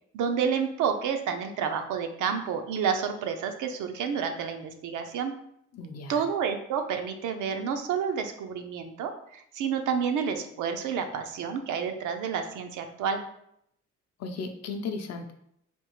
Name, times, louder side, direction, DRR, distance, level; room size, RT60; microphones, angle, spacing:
voice 1, 0.1-5.3 6.1-13.2, right 7 dB, 85° right, 6 dB, 0.6 m, -29 dB
voice 2, 5.7-6.2 14.2-15.3, left 4 dB, 55° left, 5 dB, 0.6 m, -35 dB
3.5 x 2.4 x 3.0 m, 0.72 s
cardioid pair, 90°, 30 cm